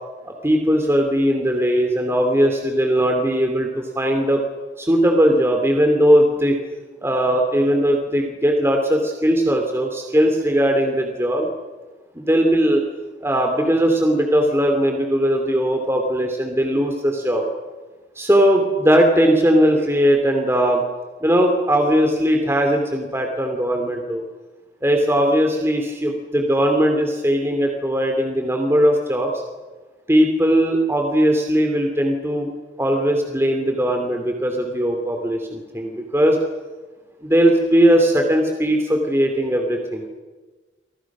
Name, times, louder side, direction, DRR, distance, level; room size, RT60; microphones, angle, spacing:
voice 1, 0.2-4.4 4.8-6.6 7.0-11.5 12.1-12.8 13.2-17.4 18.2-20.8 21.2-24.2 24.8-29.3 30.1-32.5 32.8-36.4 37.2-40.1, equal, 15° right, 3 dB, 3.0 m, -19 dB
29.5 x 26.0 x 6.3 m, 1.3 s
head